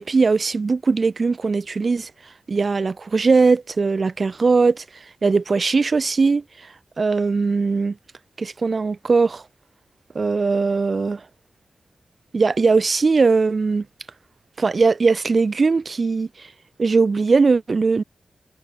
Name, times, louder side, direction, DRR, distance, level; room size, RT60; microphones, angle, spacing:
voice 1, 0.0-2.1 2.5-4.8 5.2-6.4 7.0-7.9 8.4-9.4 10.1-11.2 12.3-13.8 14.6-16.5 16.8-18.0, right 4 dB, 50° right, 4.8 m, -19 dB
wide cardioid pair, 80°, 0 cm